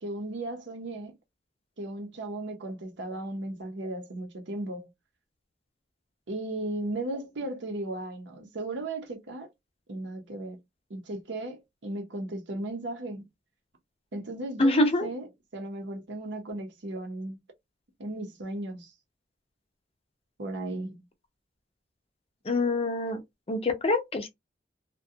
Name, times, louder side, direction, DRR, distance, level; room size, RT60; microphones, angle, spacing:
voice 1, 0.0-1.1 1.8-4.9 6.3-9.5 9.9-10.6 10.9-13.3 14.1-15.3 15.5-17.4 18.0-18.9 20.4-21.0, right 2 dB, 70° right, 0.7 m, -36 dB
voice 2, 14.6-15.1 22.5-23.2 23.5-24.3, left 2 dB, 30° left, 0.5 m, -25 dB
2.3 x 2.2 x 2.7 m
head